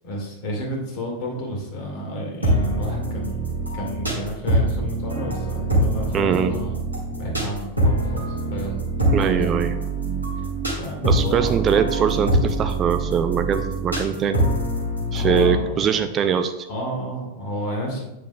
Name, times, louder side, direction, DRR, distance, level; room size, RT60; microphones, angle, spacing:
voice 1, 0.0-3.4 3.7-6.7 7.1-8.8 9.1-9.5 10.4-10.5 10.8-11.6 15.1-15.9 16.7-18.0, equal, 45° left, -1 dB, 2.1 m, -31 dB
sound 1, 2.4-15.6, right 1 dB, 85° right, 1.7 m, -24 dB
voice 2, 6.1-6.5 9.1-9.8 11.0-14.4 15.1-16.7, right 7 dB, 25° right, 9 dB, 0.4 m, -22 dB
8.1 x 6.2 x 2.3 m, 1.0 s
figure-of-eight pair, 90°, 0 cm